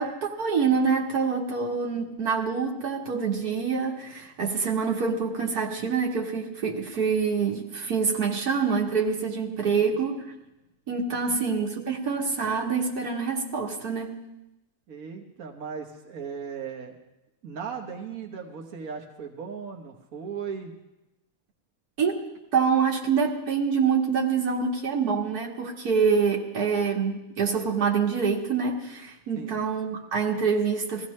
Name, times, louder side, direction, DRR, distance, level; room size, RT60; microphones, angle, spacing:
voice 1, 0.0-10.2 10.9-14.1 22.0-22.2 22.5-31.1, right 5 dB, 90° right, -1 dB, 2.1 m, -26 dB
voice 2, 9.6-10.0 11.1-11.6 14.9-16.9 17.4-20.7 29.4-29.6, right 6 dB, 65° right, 1 dB, 1.5 m, -38 dB
21.5 x 15.0 x 3.2 m, 0.93 s
omnidirectional pair, 1.6 m